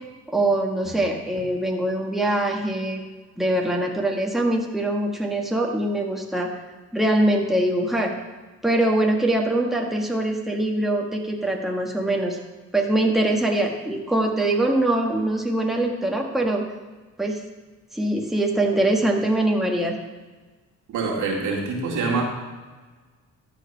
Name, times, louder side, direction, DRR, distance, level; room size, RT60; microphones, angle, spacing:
voice 1, 0.3-3.0 3.4-6.5 6.9-8.1 8.6-12.4 12.7-16.6 17.2-17.4 17.9-20.0, right 1 dB, ahead, 0 dB, 1.5 m, -23 dB
voice 2, 20.9-22.2, right 4 dB, 80° right, -1 dB, 2.3 m, -25 dB
13.5 x 5.0 x 5.7 m, 1.3 s
cardioid pair, 90°, 30 cm